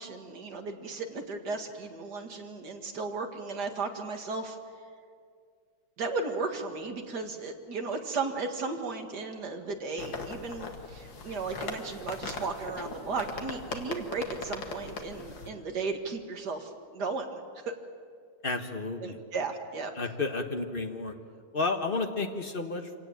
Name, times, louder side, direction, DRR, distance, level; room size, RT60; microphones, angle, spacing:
voice 1, 0.0-4.6 6.0-17.7 19.0-19.9, right 4 dB, 50° right, 4 dB, 2.4 m, -35 dB
sound 1, 10.0-15.5, left 4 dB, 60° left, 2.5 m, -39 dB
voice 2, 18.4-19.2 20.0-21.1 21.5-23.0, left 3 dB, 30° left, 5 dB, 1.3 m, -31 dB
26.0 x 18.0 x 8.8 m, 2.1 s
omnidirectional pair, 2.4 m